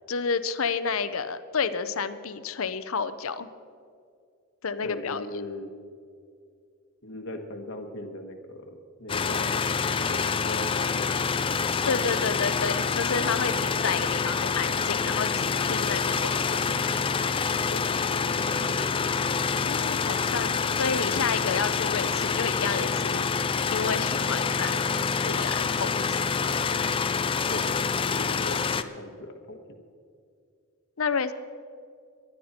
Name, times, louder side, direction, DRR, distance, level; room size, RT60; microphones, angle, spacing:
voice 1, 0.1-3.5 4.6-5.2 11.8-16.8 19.5-23.2 23.7-24.9 25.2-26.5 31.0-31.3, left 5 dB, 70° left, 12 dB, 0.7 m, -30 dB
voice 2, 4.8-5.7 7.0-9.7 10.1-11.7 17.7-18.0 18.3-19.4 27.5-29.6, left 1 dB, 55° left, 4 dB, 1.4 m, -39 dB
sound 1, 9.1-28.8, left 5 dB, 25° left, 0.4 m, -27 dB
19.0 x 12.0 x 4.4 m, 2.3 s
head